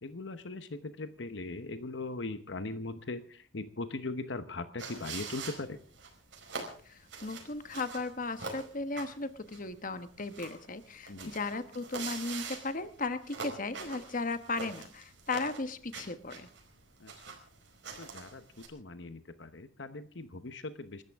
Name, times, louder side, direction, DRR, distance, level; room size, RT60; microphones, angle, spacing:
voice 1, 0.0-5.8 11.1-11.3 17.0-17.3 18.0-21.0, left 2 dB, 65° left, 11 dB, 1.0 m, -40 dB
sound 1, 4.8-18.7, right 4 dB, 65° right, 4.8 m, -44 dB
voice 2, 6.8-16.5, left 3 dB, 45° left, 11 dB, 1.1 m, -36 dB
28.5 x 13.5 x 3.6 m, 0.42 s
head